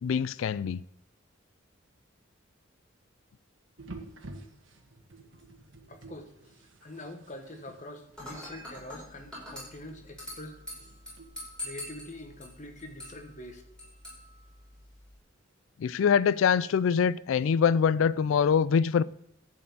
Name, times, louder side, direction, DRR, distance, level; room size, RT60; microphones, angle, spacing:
voice 1, 0.0-0.8 15.8-19.0, left 7 dB, 80° left, 0.3 m, -24 dB
sound 1, 3.8-11.3, right 2 dB, 70° right, 1.4 m, -50 dB
voice 2, 5.9-10.9 11.6-13.6, left 1 dB, 40° left, 1.4 m, -45 dB
Dishes pots and pans / Glass, 8.2-15.2, left 1 dB, 5° left, 5.0 m, -45 dB
12.0 x 4.8 x 8.4 m
head